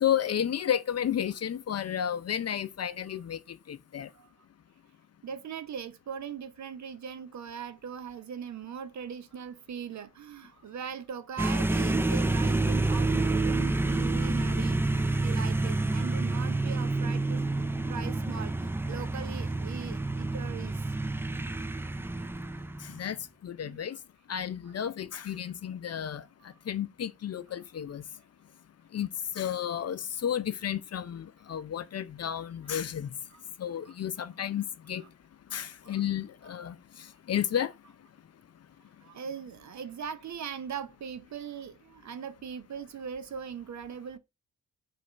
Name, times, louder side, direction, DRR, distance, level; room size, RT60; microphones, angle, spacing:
voice 1, 0.0-3.4 3.7-4.1 22.8-23.2 23.4-24.0 24.3-26.2 26.7-28.0 28.9-29.1 29.3-33.1 33.6-35.0 35.5-37.7, left 9 dB, 40° left, 0.6 m, -32 dB
voice 2, 5.2-21.0 21.5-21.6 23.6-24.0 26.4-26.6 27.5-27.6 33.3-33.4 33.9-34.0 35.0-35.1 35.8-36.0 36.4-36.5 39.0-44.2, right 7 dB, 45° right, 0.7 m, -40 dB
sound 1, 11.4-23.1, right 2 dB, 5° right, 0.4 m, -28 dB
4.8 x 2.6 x 3.4 m
hypercardioid pair, 40°, 38 cm